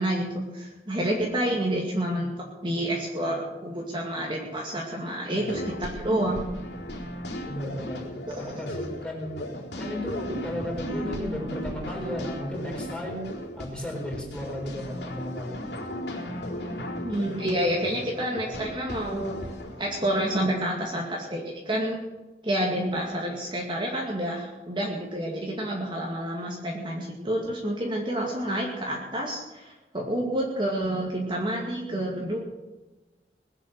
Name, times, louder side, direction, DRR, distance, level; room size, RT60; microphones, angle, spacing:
voice 1, 0.0-6.4 8.3-8.5 10.3-10.4 17.0-19.4 19.8-22.0 22.4-32.4, right 1 dB, 30° right, -2 dB, 2.2 m, -29 dB
sound 1, 5.3-20.5, equal, 75° left, 4.2 m, -36 dB
voice 2, 7.5-9.4 9.8-13.3 13.6-15.6, left 1 dB, 5° left, -2 dB, 4.6 m, -34 dB
21.0 x 8.3 x 7.7 m, 1.1 s
head